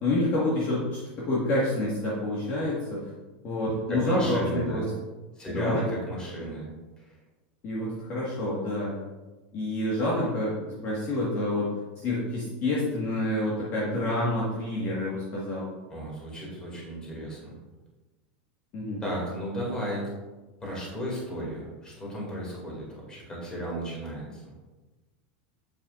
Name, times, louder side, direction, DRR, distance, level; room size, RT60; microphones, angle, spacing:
voice 1, 0.0-3.0 3.4-4.8 5.5-5.8 7.6-8.9 9.5-10.5 10.8-15.7 18.7-19.0, left 1 dB, 35° left, -6 dB, 1.6 m, -28 dB
voice 2, 3.9-4.9 5.4-6.7 15.9-17.5 19.0-20.1 20.6-24.5, equal, 15° left, -3 dB, 2.4 m, -34 dB
8.0 x 7.0 x 2.5 m, 1.2 s
supercardioid pair, 155°, 6 cm